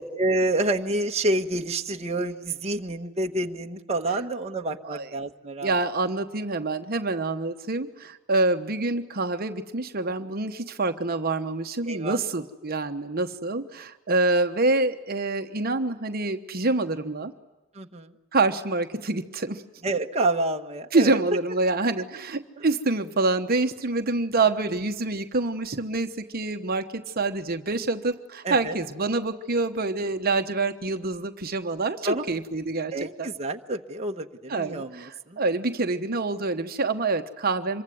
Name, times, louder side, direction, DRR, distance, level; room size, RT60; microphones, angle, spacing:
voice 1, 0.2-5.7 11.8-12.2 17.8-18.1 19.8-21.2 22.6-22.7 28.4-28.8 32.0-32.3 32.9-35.4, right 2 dB, 30° right, 3 dB, 1.2 m, -28 dB
voice 2, 5.6-17.3 18.3-19.6 20.9-33.3 34.5-37.8, right 3 dB, 50° right, 7 dB, 1.1 m, -26 dB
26.5 x 23.0 x 9.4 m, 1.1 s
head